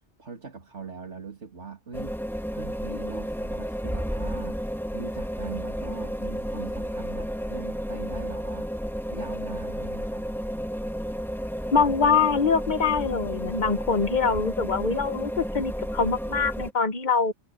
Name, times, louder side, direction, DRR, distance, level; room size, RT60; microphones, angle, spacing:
voice 1, 0.2-2.2 2.5-4.6 4.9-8.7 9.1-10.3, right 5 dB, 75° right, 2.8 m, -41 dB
weird ambiance, 1.9-16.7, equal, ahead, 2.2 m, -32 dB
voice 2, 11.7-17.3, left 5 dB, 45° left, 1.1 m, -24 dB
omnidirectional pair, 1.2 m